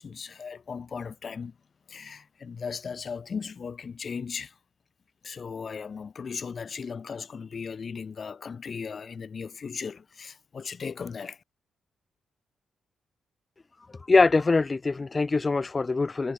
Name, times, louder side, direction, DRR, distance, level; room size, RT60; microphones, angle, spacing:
voice 1, 0.0-1.6 1.9-4.6 5.2-11.4, left 6 dB, 50° left, 5.8 m, -37 dB
voice 2, 14.1-16.3, left 3 dB, 30° left, 0.6 m, -23 dB
cardioid pair, 70°, 0 cm